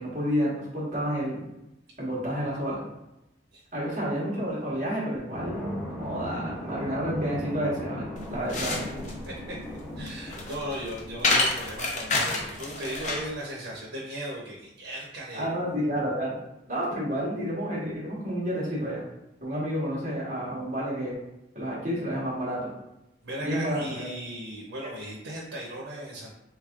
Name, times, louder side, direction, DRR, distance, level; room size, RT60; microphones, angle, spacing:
voice 1, 0.0-1.4 2.0-2.8 3.7-8.8 15.3-16.4 16.7-19.1 19.4-21.2 21.5-22.7 23.4-24.1 24.8-24.9, equal, 40° right, -6 dB, 1.3 m, -30 dB
sound 1, 5.3-11.7, left 1 dB, 5° left, 0.8 m, -38 dB
sound 2, 8.2-13.3, left 3 dB, 40° left, 0.5 m, -29 dB
voice 2, 9.3-9.6 10.0-15.5 23.2-26.3, right 1 dB, 85° right, -3 dB, 0.7 m, -37 dB
3.6 x 3.2 x 2.4 m, 0.92 s
head